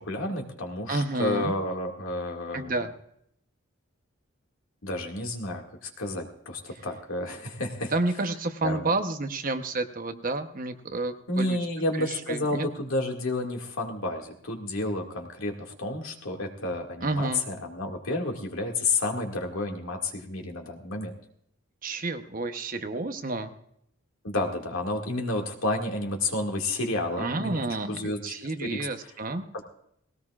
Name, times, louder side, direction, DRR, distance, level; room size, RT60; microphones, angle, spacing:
voice 1, 0.0-2.8 4.8-7.9 8.6-8.9 11.3-21.1 24.2-27.6 27.9-28.3 28.6-28.9 29.5-29.6, left 2 dB, 80° left, 2 dB, 2.1 m, -30 dB
voice 2, 0.9-1.5 2.5-2.9 7.9-11.6 12.0-12.7 17.0-17.5 21.8-23.5 27.2-29.4, right 2 dB, 40° right, 8 dB, 0.9 m, -30 dB
19.5 x 17.5 x 2.4 m, 0.72 s
head